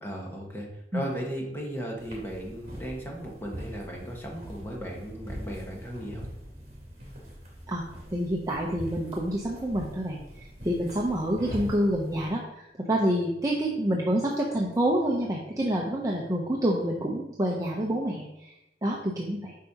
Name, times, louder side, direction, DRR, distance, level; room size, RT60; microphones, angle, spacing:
voice 1, 0.0-6.3, equal, 15° left, -1 dB, 1.3 m, -36 dB
sound 1, 2.0-12.3, equal, 40° right, 2.4 m, -42 dB
voice 2, 8.1-18.5 18.8-19.5, right 1 dB, 20° right, -3 dB, 0.7 m, -28 dB
8.3 x 5.4 x 2.9 m, 0.87 s
head